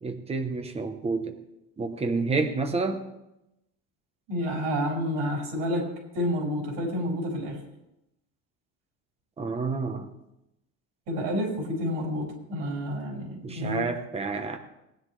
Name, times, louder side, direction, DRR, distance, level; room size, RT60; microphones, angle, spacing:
voice 1, 0.0-1.4 1.8-3.1 9.4-10.1 13.4-14.6, right 3 dB, 15° right, 7 dB, 0.9 m, -29 dB
voice 2, 4.3-5.9 6.1-7.6 11.1-13.8, equal, 85° right, -1 dB, 5.5 m, -29 dB
18.5 x 10.5 x 3.2 m, 0.88 s
cardioid pair, 165°, 41 cm